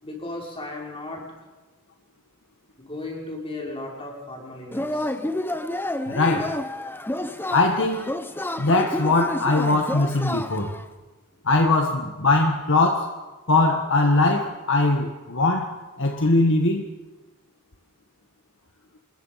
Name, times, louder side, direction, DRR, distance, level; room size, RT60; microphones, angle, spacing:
voice 1, 0.0-1.5 2.8-5.1 7.3-7.4, left 2 dB, 25° left, -2 dB, 6.1 m, -36 dB
Yell / Cheering, 4.7-10.8, left 1 dB, 10° left, 1.0 m, -30 dB
voice 2, 6.1-6.6 7.5-8.1 8.6-10.8 11.4-13.2 13.5-16.9, left 2 dB, 60° left, 4 dB, 1.6 m, -21 dB
27.0 x 21.0 x 5.8 m, 1.2 s
head